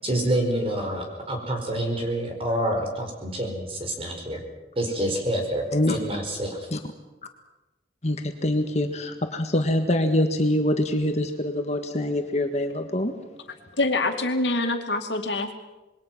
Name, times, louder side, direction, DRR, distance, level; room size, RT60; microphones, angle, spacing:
voice 1, 0.0-4.4 4.7-6.6, right 1 dB, 30° right, 3 dB, 4.8 m, -27 dB
voice 2, 8.0-13.1, left 1 dB, 40° left, 6 dB, 1.6 m, -24 dB
voice 3, 13.8-15.5, left 2 dB, 80° left, 5 dB, 2.4 m, -25 dB
26.5 x 21.5 x 6.1 m, 1.1 s
head